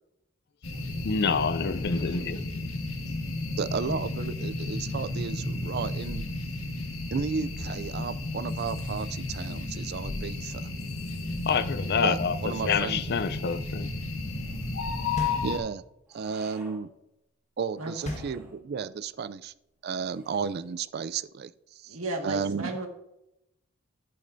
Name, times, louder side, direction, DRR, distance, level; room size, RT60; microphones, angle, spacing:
sound 1, 0.6-15.6, left 2 dB, 80° left, 1.5 m, -33 dB
voice 1, 1.0-2.4 11.5-12.4 12.6-13.9, left 6 dB, 50° left, 0.5 m, -27 dB
voice 2, 1.8-2.3 17.8-17.9 21.9-22.9, right 2 dB, 85° right, 1.8 m, -35 dB
voice 3, 3.6-6.2 7.1-10.7 12.0-13.0 15.4-15.8 16.1-16.9 17.6-19.5 19.8-22.0 22.2-22.7, right 5 dB, 50° right, 0.4 m, -33 dB
sound 2, 14.3-15.2 16.1-16.8 17.7-18.6 19.9-20.7, right 1 dB, 10° right, 2.8 m, -53 dB
sound 3, 15.2-16.1 18.0-19.0, left 1 dB, 35° left, 1.3 m, -37 dB
10.5 x 8.6 x 2.6 m
head